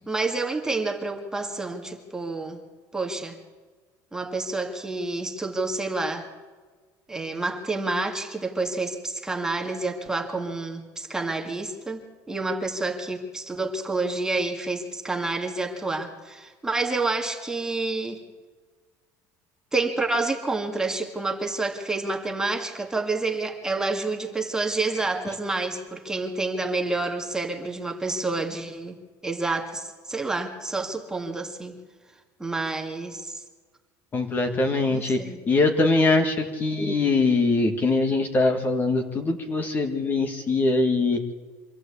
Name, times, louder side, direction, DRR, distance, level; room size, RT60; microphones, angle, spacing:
voice 1, 0.1-2.6 2.9-3.4 4.1-6.3 7.1-18.2 19.7-31.8 32.4-33.4 34.9-35.4, right 3 dB, 10° right, 2 dB, 2.2 m, -29 dB
voice 2, 34.1-35.2 35.5-41.2, left 3 dB, 25° left, 5 dB, 1.8 m, -22 dB
25.0 x 14.0 x 8.4 m, 1.4 s
cardioid pair, 140°, 8 cm